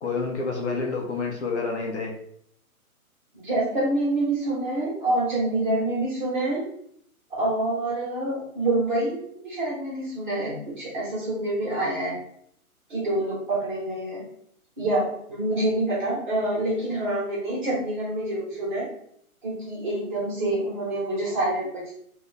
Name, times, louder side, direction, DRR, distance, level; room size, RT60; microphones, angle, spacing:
voice 1, 0.0-2.1, left 4 dB, 50° left, 0 dB, 0.7 m, -28 dB
voice 2, 3.4-6.6 7.4-9.2 9.4-12.1 12.9-14.2 14.8-18.9 19.4-21.9, right 1 dB, 35° right, -5 dB, 1.4 m, -26 dB
2.6 x 2.5 x 3.6 m, 0.67 s
hypercardioid pair, 160°, 44 cm